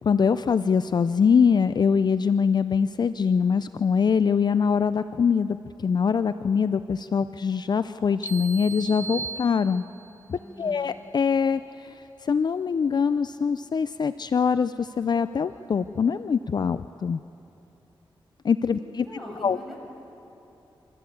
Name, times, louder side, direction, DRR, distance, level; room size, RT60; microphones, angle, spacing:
voice 1, 0.0-9.8 10.3-17.2 18.4-19.1 19.4-19.6, left 6 dB, 50° left, 12 dB, 0.4 m, -23 dB
sound 1, 8.2-10.2, right 4 dB, 25° left, 1.0 m, -36 dB
voice 2, 10.4-10.8 18.8-19.8, equal, ahead, -2 dB, 6.5 m, -41 dB
27.0 x 13.5 x 8.4 m, 2.9 s
wide cardioid pair, 85°, 9 cm